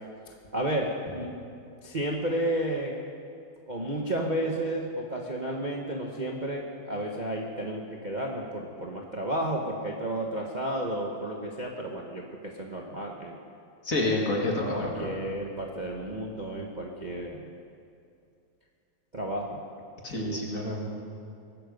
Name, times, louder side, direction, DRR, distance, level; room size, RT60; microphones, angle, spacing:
voice 1, 0.3-1.3 1.8-2.9 3.7-13.4 14.7-17.5 19.1-19.6 20.1-20.4, right 1 dB, 30° right, -1 dB, 1.0 m, -32 dB
voice 2, 13.8-15.1 20.0-21.0, left 2 dB, 40° left, -1 dB, 2.4 m, -28 dB
22.0 x 12.0 x 5.3 m, 2.5 s
omnidirectional pair, 2.3 m